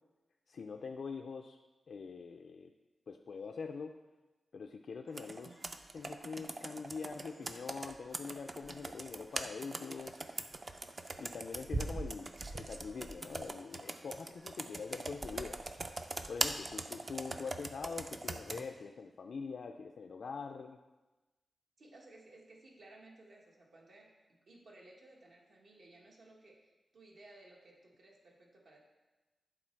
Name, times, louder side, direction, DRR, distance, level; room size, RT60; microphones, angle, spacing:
voice 1, 0.5-1.6 1.9-2.7 3.1-4.0 4.5-5.6 5.9-10.4 11.2-15.6 16.3-20.8, left 5 dB, 65° left, 4 dB, 0.3 m, -44 dB
Computer keyboard, 5.1-18.6, right 2 dB, 30° right, 0.4 m, -41 dB
voice 2, 21.8-28.8, right 2 dB, 70° right, -2 dB, 1.4 m, -58 dB
9.9 x 4.0 x 4.5 m, 1.1 s
wide cardioid pair, 160°, 0 cm